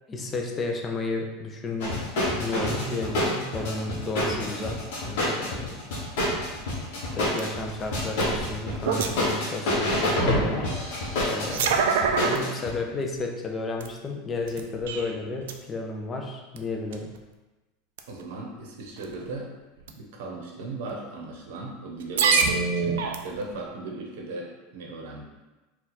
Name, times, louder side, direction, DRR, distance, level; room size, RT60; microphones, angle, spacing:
voice 1, 0.1-2.0 2.4-5.8 7.0-10.7 11.3-11.9 12.2-17.1, left 2 dB, 15° left, 2 dB, 0.4 m, -32 dB
sound 1, 1.8-12.7, left 1 dB, 55° left, 1.4 m, -28 dB
sound 2, 7.4-7.5 8.0-9.4 10.1-10.2 11.2-12.4 13.0-13.1 13.8-13.9 14.4-15.1 15.4-15.5 16.6-16.7 16.9-17.2 18.0-18.2 19.0-19.2 19.8-19.9 20.9-21.0 22.0-23.5, right 5 dB, 85° right, 0.4 m, -25 dB
voice 2, 18.1-19.5 19.9-25.2, right 2 dB, 65° right, 0 dB, 0.9 m, -37 dB
4.4 x 2.3 x 4.1 m, 1.1 s
supercardioid pair, 180°, 0 cm